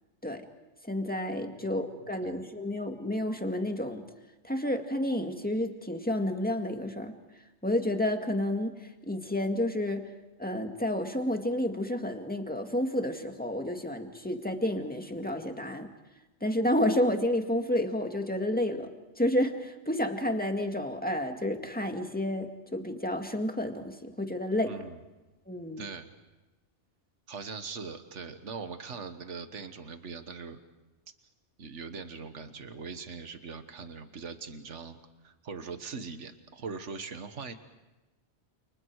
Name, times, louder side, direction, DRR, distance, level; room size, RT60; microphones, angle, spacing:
voice 1, 0.9-4.0 4.4-7.1 7.6-8.7 9.0-10.1 10.4-15.9 16.4-18.9 19.2-24.7 25.5-25.8, left 1 dB, 5° left, 4 dB, 1.9 m, -30 dB
voice 2, 24.6-25.0 25.8-26.1 27.3-30.6 31.6-35.0 35.2-37.5, right 5 dB, 85° right, 8 dB, 1.7 m, -41 dB
29.5 x 29.0 x 4.7 m, 1.1 s
omnidirectional pair, 1.2 m